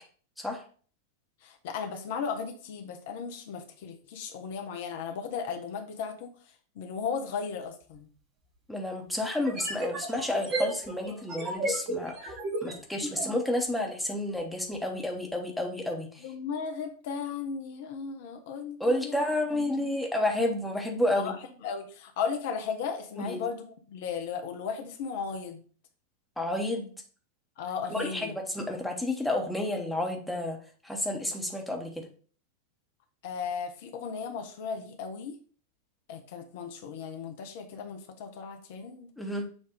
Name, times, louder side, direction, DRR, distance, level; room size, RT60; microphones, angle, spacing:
voice 1, 1.4-8.1 16.2-19.3 19.5-20.0 21.2-25.6 27.6-28.4 33.2-35.4 36.1-39.1, left 6 dB, 50° left, 5 dB, 0.7 m, -36 dB
sound 1, 7.9-8.0 9.4-13.3, right 2 dB, 35° right, 1.4 m, -33 dB
voice 2, 8.7-12.3 12.6-16.2 18.8-21.3 23.2-23.4 26.4-26.9 27.9-30.6 30.8-32.1 39.2-39.5, left 1 dB, ahead, 1 dB, 1.1 m, -30 dB
7.1 x 2.6 x 5.1 m, 0.42 s
figure-of-eight pair, 90°, 0 cm